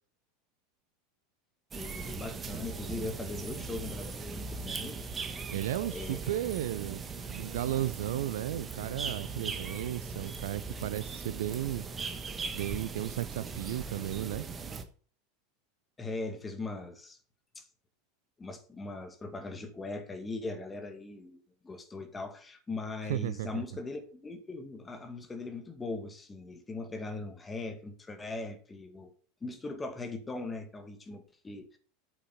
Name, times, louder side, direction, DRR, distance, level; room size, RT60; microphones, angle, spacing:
voice 1, 1.7-5.0 5.9-6.6 16.0-17.2 17.6-17.7 18.4-21.4 21.6-29.1 29.4-31.8, left 3 dB, 15° left, 2.0 m, -40 dB
sound 1, 1.7-14.8, right 4 dB, 25° right, 1.3 m, -39 dB
voice 2, 5.5-11.8 12.5-14.5 23.1-23.6, right 13 dB, 60° right, 0.4 m, -34 dB
8.7 x 7.2 x 4.3 m
figure-of-eight pair, 80°, 0 cm